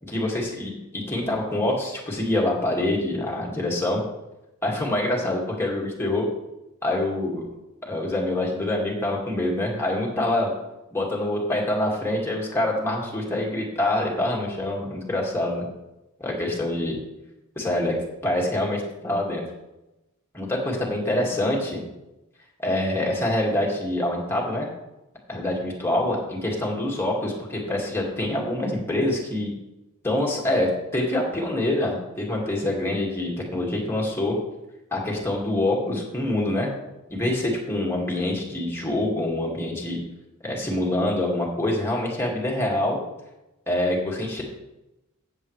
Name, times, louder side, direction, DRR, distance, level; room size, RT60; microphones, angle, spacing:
voice 1, 0.0-4.0 4.6-6.3 6.8-7.4 7.9-10.5 10.9-15.6 16.2-17.0 17.6-17.9 18.2-19.4 20.3-21.8 22.6-24.7 25.3-29.5 30.0-34.4 34.9-36.7 37.1-40.0 40.4-43.0 43.7-44.4, left 1 dB, 10° left, -2 dB, 2.2 m, -25 dB
15.0 x 7.5 x 3.3 m, 0.97 s
head